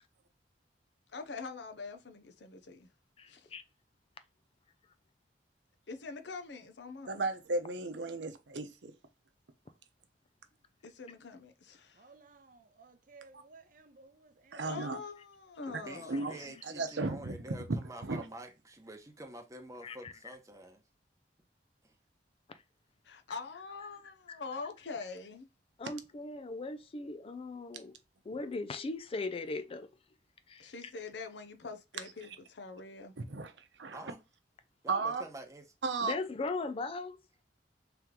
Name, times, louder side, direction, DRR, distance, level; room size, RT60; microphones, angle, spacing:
voice 1, 1.1-2.9 3.3-3.5 5.9-7.2 10.8-12.0 14.7-16.6 23.0-25.5 30.6-33.1, left 4 dB, 75° left, 0.7 m, -44 dB
voice 2, 3.2-3.6 19.8-20.1 22.5-22.6 24.3-24.4 25.8-28.0 28.3-29.9 30.5-30.9 36.0-37.2, left 3 dB, 35° left, 0.4 m, -39 dB
voice 3, 7.1-8.9 14.5-15.0 15.7-15.8 16.1-17.4 18.0-18.2 33.2-33.5 33.8-34.0 34.9-35.2 35.8-36.1, right 3 dB, 85° right, 0.7 m, -35 dB
voice 4, 11.9-14.7, right 4 dB, 50° right, 0.6 m, -58 dB
voice 5, 15.7-20.8 21.8-21.9 33.9-34.2 34.8-35.7, right 1 dB, 20° right, 0.8 m, -48 dB
3.4 x 3.0 x 3.6 m
head